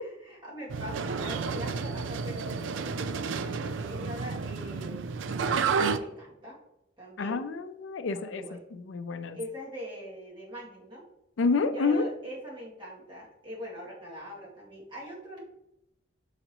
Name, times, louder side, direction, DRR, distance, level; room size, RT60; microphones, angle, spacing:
voice 1, 0.0-5.0 5.5-6.6 7.0-7.5 8.1-8.6 9.3-11.0 11.7-15.4, equal, 25° right, -6 dB, 2.3 m, -42 dB
sound 1, 0.7-6.0, right 5 dB, 90° right, 0.4 m, -31 dB
voice 2, 7.2-8.5 8.7-9.4 11.4-12.1, left 4 dB, 90° left, 10 dB, 0.5 m, -28 dB
6.6 x 4.9 x 2.9 m, 0.84 s
head